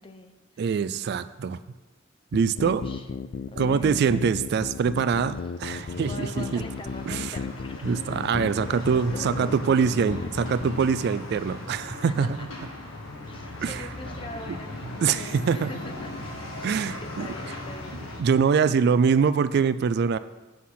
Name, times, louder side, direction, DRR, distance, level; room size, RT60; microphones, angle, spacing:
voice 1, 0.0-0.7 2.6-3.1 3.7-4.0 6.0-9.6 12.2-12.5 13.2-16.1 16.5-18.0 18.7-18.9, left 2 dB, 25° left, 6 dB, 0.7 m, -43 dB
voice 2, 0.6-1.6 2.3-2.9 3.6-6.6 7.1-7.4 7.8-12.5 13.6-13.9 15.0-15.7 16.6-17.3 18.2-20.2, right 6 dB, 55° right, 14 dB, 0.3 m, -24 dB
sound 1, 2.3-11.0, left 5 dB, 55° left, 0.3 m, -35 dB
sound 2, 5.6-18.2, left 2 dB, 90° left, 1.7 m, -39 dB
8.4 x 5.8 x 5.7 m, 1.2 s
head